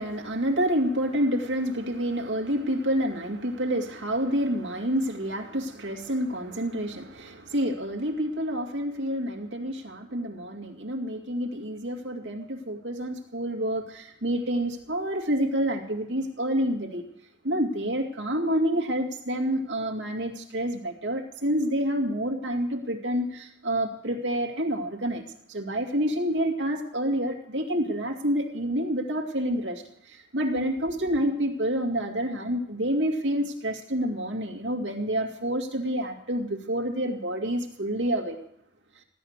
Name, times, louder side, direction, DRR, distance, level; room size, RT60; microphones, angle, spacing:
voice 1, 0.0-17.0 17.4-38.4, equal, 85° right, 2 dB, 2.3 m, -28 dB
16.0 x 11.0 x 6.5 m, 0.74 s
head